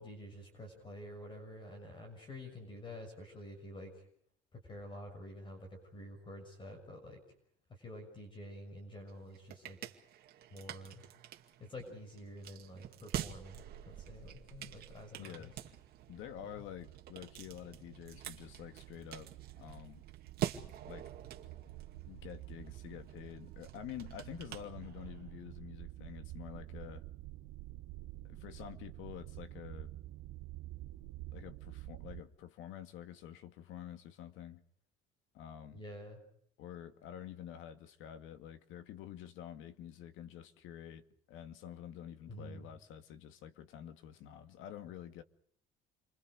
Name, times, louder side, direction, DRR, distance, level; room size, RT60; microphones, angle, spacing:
voice 1, 0.0-4.1 4.5-7.2 7.7-9.8 10.5-11.0 11.6-15.5 16.4-16.6 35.7-36.2 42.3-42.7, left 1 dB, 25° left, 6.3 m, -49 dB
sound 1, 9.1-25.3, right 11 dB, 50° right, 2.3 m, -46 dB
voice 2, 15.2-15.5 16.1-20.0 20.9-21.1 22.1-27.0 28.2-30.0 31.3-34.6 35.3-35.8 36.6-45.2, left 10 dB, 70° left, 2.3 m, -48 dB
sound 2, 15.4-32.2, right 17 dB, 80° right, 0.9 m, -50 dB
29.5 x 25.0 x 5.0 m
cardioid pair, 175°, 21 cm